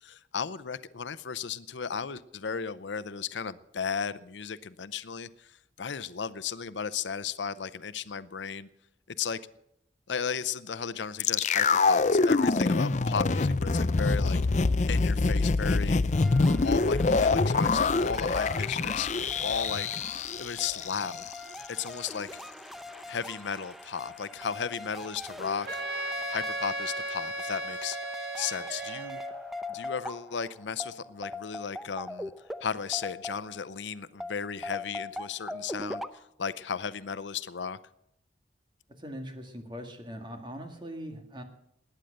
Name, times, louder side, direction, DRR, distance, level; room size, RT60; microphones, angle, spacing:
voice 1, 0.0-8.7 9.1-9.4 10.1-14.4 14.9-16.0 16.6-19.1 19.4-19.9 20.4-21.2 21.7-22.3 23.1-26.0 26.3-29.2 29.7-32.3 32.6-37.8, left 6 dB, 85° left, 0.7 m, -35 dB
sound 1, 11.2-21.3 21.6-21.7, left 3 dB, 40° left, 0.5 m, -25 dB
sound 2, 16.1-33.7 34.2-36.1, left 2 dB, ahead, 0.6 m, -42 dB
Wind instrument woodwind instrument, 25.7-29.4, right 1 dB, 60° right, 1.3 m, -35 dB
voice 2, 39.0-41.4, equal, 25° right, 2.0 m, -41 dB
20.5 x 9.2 x 6.6 m
head